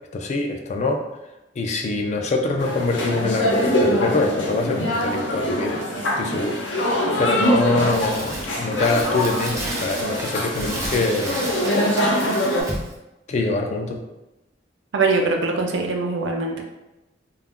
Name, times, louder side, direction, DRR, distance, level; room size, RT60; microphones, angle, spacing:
voice 1, 0.1-1.1 1.6-5.8 6.2-6.6 7.2-11.4 13.3-14.0, left 3 dB, 40° left, 3 dB, 0.3 m, -24 dB
sound 1, 2.6-12.6, equal, 80° left, 0.6 m, -23 dB
Crumpling crinkling, 7.7-13.0, right 1 dB, 15° right, 0.5 m, -32 dB
voice 2, 14.9-16.6, right 3 dB, 80° right, 2 dB, 0.5 m, -22 dB
2.3 x 2.1 x 3.5 m, 0.96 s
head